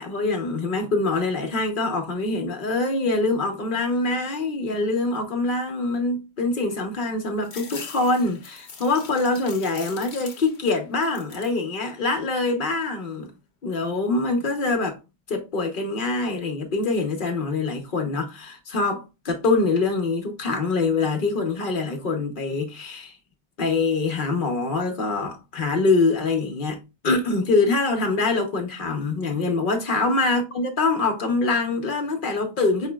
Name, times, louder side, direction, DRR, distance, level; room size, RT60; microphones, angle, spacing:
voice 1, 0.0-13.3 13.6-15.0 15.3-23.2 23.6-32.9, left 3 dB, 55° left, 1.0 m, -24 dB
sound 1, 7.4-10.7 11.0-11.6 12.1-12.8, left 5 dB, 80° left, 1.1 m, -42 dB
5.5 x 3.0 x 2.2 m
omnidirectional pair, 1.1 m